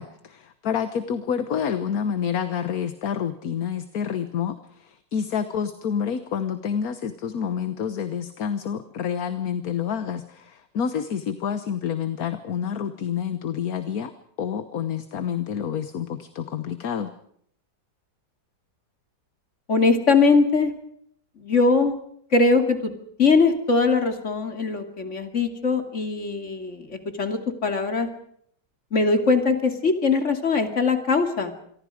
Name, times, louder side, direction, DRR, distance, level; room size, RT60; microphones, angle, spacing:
voice 1, 0.0-14.1 14.4-17.1, left 8 dB, 55° left, 10 dB, 1.5 m, -28 dB
voice 2, 19.7-20.7 21.4-21.9 22.3-22.9 23.2-28.1 28.9-31.5, left 4 dB, 40° left, 6 dB, 2.9 m, -21 dB
27.0 x 23.5 x 5.0 m, 0.66 s
omnidirectional pair, 1.9 m